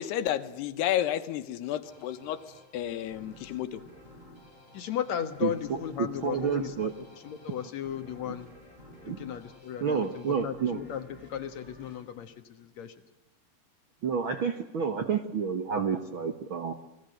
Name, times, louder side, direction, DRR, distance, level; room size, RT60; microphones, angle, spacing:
voice 1, 0.0-2.4 2.7-3.8, left 11 dB, 85° left, 11 dB, 3.3 m, -31 dB
sound 1, 1.8-13.1, equal, 10° right, 8.0 m, -53 dB
voice 2, 4.7-6.7 7.2-8.5 9.0-12.3 12.6-12.9, left 9 dB, 60° left, 9 dB, 2.1 m, -35 dB
voice 3, 5.4-6.9 8.2-8.3 9.0-9.2 9.8-10.8 14.0-16.7, right 6 dB, 70° right, 8 dB, 1.2 m, -30 dB
29.0 x 20.5 x 7.9 m, 1.0 s
omnidirectional pair, 4.6 m